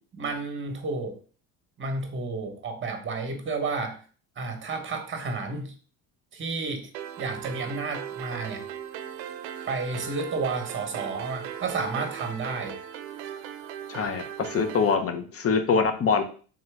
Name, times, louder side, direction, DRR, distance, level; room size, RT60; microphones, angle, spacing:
voice 1, 0.1-1.2 1.8-4.0 4.4-5.7 6.3-6.9 7.2-8.6 9.7-12.8, right 3 dB, 30° right, 5 dB, 1.0 m, -31 dB
sound 1, 6.9-14.9, right 10 dB, 85° right, 0.6 m, -38 dB
voice 2, 13.9-16.2, left 5 dB, 35° left, 7 dB, 0.7 m, -24 dB
3.7 x 2.8 x 3.3 m, 0.40 s
supercardioid pair, 95°, 40 cm